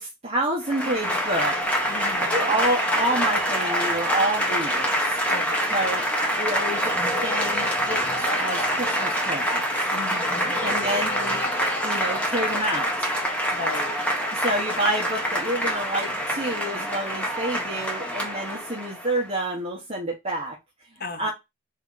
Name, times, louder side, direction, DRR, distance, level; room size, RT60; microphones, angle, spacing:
voice 1, 0.0-1.6 1.9-5.2 5.7-6.0 6.4-9.6 10.6-11.5 11.8-13.1 14.3-20.6 21.2-21.3, right 1 dB, 30° right, 1.0 m, -28 dB
Applause / Crowd, 0.6-19.2, equal, 5° left, 0.9 m, -25 dB
voice 2, 1.9-2.5 5.3-5.7 9.9-10.6 13.5-14.0 21.0-21.3, left 3 dB, 45° left, 0.9 m, -36 dB
3.7 x 2.8 x 3.7 m
head